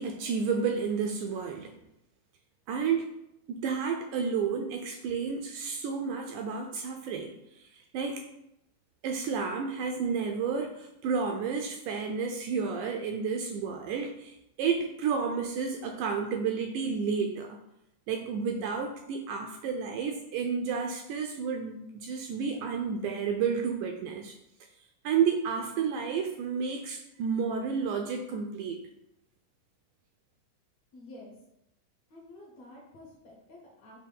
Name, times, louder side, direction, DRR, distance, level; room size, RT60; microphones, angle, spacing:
voice 1, 0.0-1.8 2.7-3.1 3.5-8.2 9.0-17.6 18.1-24.4 25.0-28.8, right 6 dB, 80° right, 3 dB, 1.9 m, -31 dB
voice 2, 30.9-31.3 32.1-34.0, left 1 dB, 60° left, -3 dB, 2.1 m, -50 dB
6.6 x 3.0 x 5.4 m, 0.84 s
omnidirectional pair, 3.9 m